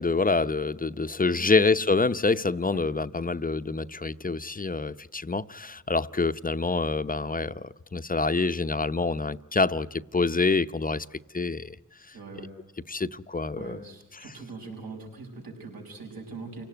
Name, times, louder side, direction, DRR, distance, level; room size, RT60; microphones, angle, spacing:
voice 1, 0.0-11.1 11.3-11.8 12.9-13.8, left 3 dB, 25° left, 13 dB, 0.8 m, -26 dB
voice 2, 1.3-1.6 2.7-2.8 12.1-12.5 13.6-16.6, right 4 dB, 75° right, 0 dB, 6.4 m, -42 dB
28.0 x 18.0 x 9.3 m, 1.0 s
cardioid pair, 50°, 36 cm